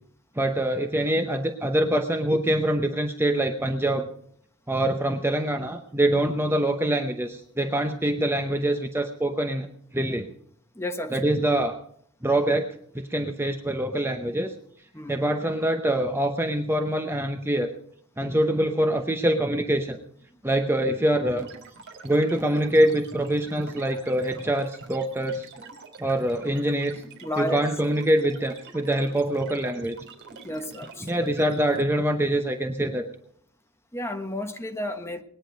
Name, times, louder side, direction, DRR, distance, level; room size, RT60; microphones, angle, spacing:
voice 1, 0.4-4.1 4.7-9.7 9.9-10.3 11.1-11.8 12.2-12.7 12.9-14.5 15.1-17.7 18.2-20.0 20.4-21.5 22.0-25.5 26.0-27.0 27.4-30.0 31.1-33.0, right 1 dB, 10° right, 5 dB, 0.8 m, -24 dB
voice 2, 10.7-11.2 14.9-15.2 20.3-20.4 27.2-27.7 30.4-31.3 33.9-35.2, left 1 dB, 10° left, 5 dB, 1.3 m, -32 dB
sound 1, 21.4-31.8, right 3 dB, 50° right, 3.6 m, -45 dB
20.5 x 9.9 x 5.2 m, 0.66 s
head